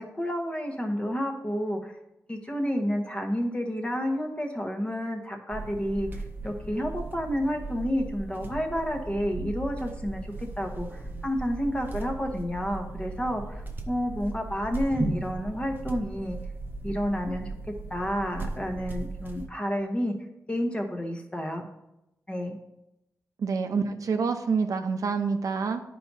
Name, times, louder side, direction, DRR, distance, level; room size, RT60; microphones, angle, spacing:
voice 1, 0.0-1.9 2.3-16.4 16.8-17.5 17.9-20.1 20.5-21.6 22.3-22.6, equal, 20° left, 3 dB, 1.0 m, -30 dB
sound 1, 5.5-19.5, right 2 dB, 35° right, 0.7 m, -37 dB
voice 2, 23.4-25.8, right 5 dB, 75° right, 6 dB, 0.6 m, -27 dB
11.0 x 4.6 x 2.7 m, 0.89 s
wide cardioid pair, 125°, 6 cm